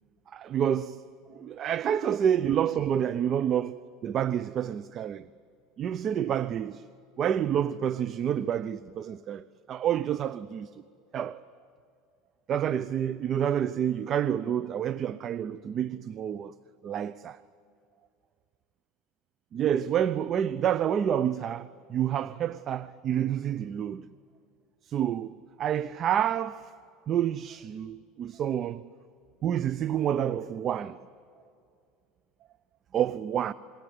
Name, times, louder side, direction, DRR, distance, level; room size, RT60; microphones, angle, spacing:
voice 1, 0.3-1.0 1.3-5.3 5.8-6.9 7.2-10.8 11.1-11.4 12.5-16.5 16.8-17.4 19.5-24.0 24.8-26.7 27.1-28.9 29.4-31.0 32.9-33.5, right 9 dB, 40° right, 0.6 m, -28 dB
26.5 x 22.0 x 9.5 m
supercardioid pair, 100°, 0 cm